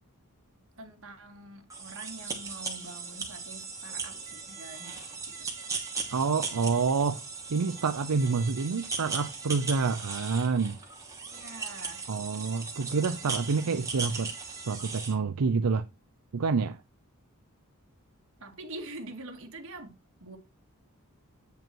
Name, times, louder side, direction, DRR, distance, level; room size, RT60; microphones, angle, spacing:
voice 1, 0.8-5.0 5.4-5.5 11.3-12.1 18.4-20.4, right 2 dB, 60° right, 2.2 m, -45 dB
sound 1, 1.7-15.1, right 4 dB, 15° right, 2.5 m, -38 dB
voice 2, 6.1-7.2 7.5-10.8 12.1-15.9 16.3-16.8, right 4 dB, 85° right, 0.6 m, -28 dB
9.0 x 5.2 x 4.6 m
head